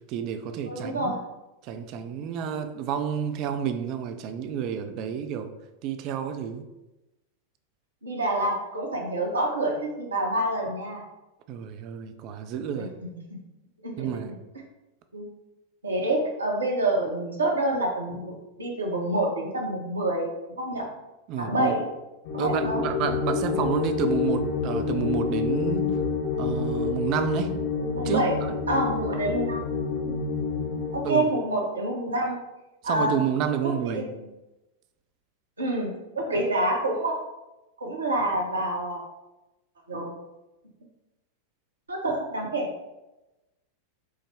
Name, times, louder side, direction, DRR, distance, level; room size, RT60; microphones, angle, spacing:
voice 1, 0.1-1.1 1.6-5.5 5.8-6.6 11.5-12.9 14.0-14.3 21.3-21.7 22.4-26.0 26.4-27.6 28.0-28.2 31.0-31.3 32.8-34.0, right 8 dB, 40° right, 8 dB, 0.3 m, -30 dB
voice 2, 0.7-1.2 8.0-11.0 12.7-12.9 13.3-13.4 13.8-14.1 15.1-15.2 15.8-18.3 18.6-20.8 21.4-21.9 22.3-22.8 27.9-28.4 28.7-29.7 30.0-30.2 30.9-32.4 32.8-33.2 33.6-34.1 35.6-37.1 37.8-39.0 39.9-40.1 41.9-42.7, right 1 dB, 75° right, 0 dB, 0.8 m, -27 dB
sound 1, 22.3-31.0, left 5 dB, 50° left, 0.6 m, -28 dB
4.7 x 2.1 x 3.3 m, 0.98 s
figure-of-eight pair, 90°, 0 cm